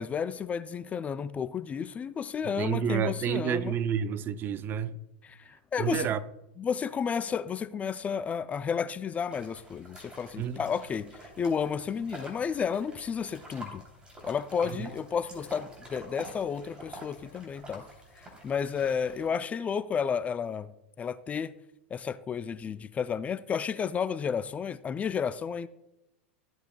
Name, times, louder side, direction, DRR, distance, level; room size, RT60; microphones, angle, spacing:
voice 1, 0.0-3.7 5.2-6.1 6.6-13.8 14.2-17.9 18.2-20.7 21.0-21.5 21.9-25.7, left 7 dB, 25° left, 0.3 m, -32 dB
voice 2, 2.6-5.0 5.8-6.2 10.4-10.6 14.6-14.9, right 8 dB, 35° right, 0.5 m, -30 dB
sound 1, 9.3-19.3, right 1 dB, 15° right, 3.1 m, -48 dB
14.0 x 7.9 x 2.2 m
hypercardioid pair, 100°, 6 cm